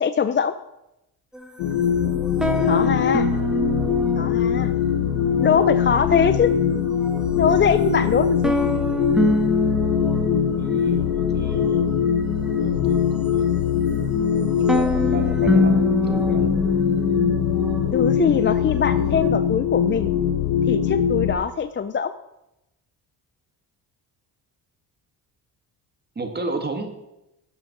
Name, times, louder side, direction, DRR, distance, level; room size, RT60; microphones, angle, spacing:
voice 1, 0.0-0.5 2.6-3.3 4.2-4.7 5.4-6.5 7.4-8.5 17.9-20.1 20.7-22.1, left 6 dB, 30° left, 12 dB, 0.5 m, -22 dB
sound 1, 1.3-19.3, left 1 dB, ahead, 1.6 m, -27 dB
sound 2, 1.6-21.4, left 8 dB, 80° left, 1.1 m, -22 dB
voice 2, 10.6-11.9 12.6-13.6 14.6-16.5 26.2-26.9, right 3 dB, 25° right, 5 dB, 1.9 m, -33 dB
12.0 x 7.6 x 6.0 m, 0.91 s
supercardioid pair, 75°, 41 cm